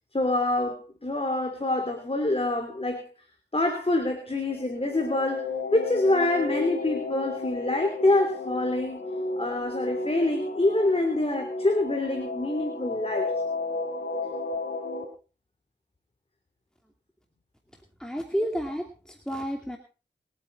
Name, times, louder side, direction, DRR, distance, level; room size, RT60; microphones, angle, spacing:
voice 1, 0.1-3.0 3.5-9.0 9.4-13.3, left 2 dB, 30° left, 4 dB, 3.3 m, -26 dB
sound 1, 4.4-15.0, left 3 dB, 80° left, 3.4 m, -33 dB
voice 2, 18.0-19.8, equal, 5° left, 3 dB, 2.6 m, -31 dB
26.5 x 8.9 x 4.1 m, 0.36 s
cardioid pair, 50°, 18 cm